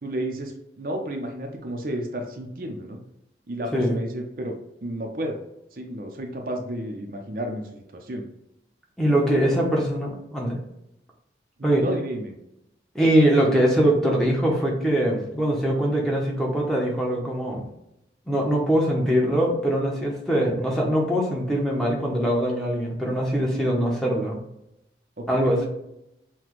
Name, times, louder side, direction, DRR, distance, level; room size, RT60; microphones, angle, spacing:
voice 1, 0.0-3.0 3.5-5.4 5.7-8.2 9.3-9.4 11.6-12.4 25.2-25.6, right 1 dB, 50° right, 3 dB, 0.6 m, -32 dB
voice 2, 9.0-10.6 11.6-11.8 12.9-17.6 18.3-24.4 25.3-25.7, right 1 dB, 5° left, -2 dB, 0.8 m, -22 dB
5.8 x 2.3 x 3.1 m, 0.84 s
head